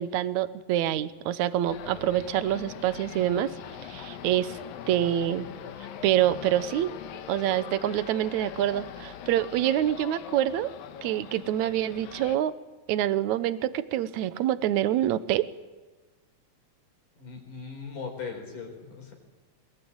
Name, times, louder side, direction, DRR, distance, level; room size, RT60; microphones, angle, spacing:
voice 1, 0.0-3.5 3.8-4.6 4.9-5.5 6.0-6.9 7.3-10.7 11.0-12.5 12.9-15.4, right 12 dB, 70° right, 15 dB, 2.0 m, -26 dB
sound 1, 1.6-12.4, left 9 dB, 80° left, 3.0 m, -42 dB
voice 2, 17.2-19.1, left 5 dB, 65° left, 3 dB, 5.8 m, -39 dB
22.0 x 20.5 x 8.8 m, 1.2 s
omnidirectional pair, 4.0 m